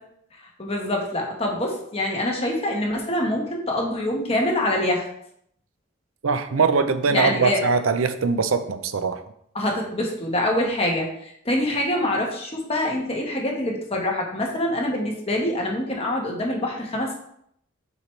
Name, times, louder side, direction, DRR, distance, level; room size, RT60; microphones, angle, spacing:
voice 1, 0.6-5.1 7.1-7.7 9.5-17.2, left 1 dB, 30° left, 0 dB, 1.2 m, -25 dB
voice 2, 6.2-9.2, right 4 dB, 85° right, 10 dB, 0.6 m, -22 dB
6.8 x 4.7 x 3.3 m, 0.71 s
head